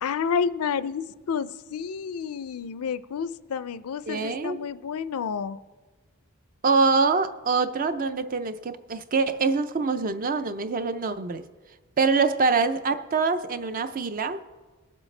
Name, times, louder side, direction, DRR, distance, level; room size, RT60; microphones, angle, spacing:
voice 1, 0.0-5.6, left 6 dB, 75° left, 0.4 m, -30 dB
voice 2, 4.1-4.6 6.6-11.5 12.0-14.4, right 4 dB, 40° right, 0.5 m, -24 dB
19.5 x 7.5 x 3.3 m
head